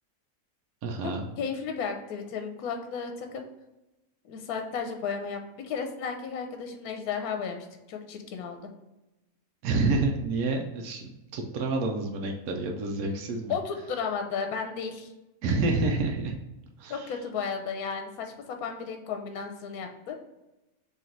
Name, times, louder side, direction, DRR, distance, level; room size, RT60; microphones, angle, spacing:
voice 1, 0.8-1.3 9.6-13.5 15.4-16.3 16.8-17.1, right 3 dB, 75° right, 2 dB, 1.1 m, -28 dB
voice 2, 1.4-3.4 4.2-8.7 13.5-15.1 16.9-20.2, left 6 dB, 80° left, 5 dB, 1.1 m, -34 dB
3.8 x 3.0 x 4.4 m, 0.98 s
omnidirectional pair, 1.6 m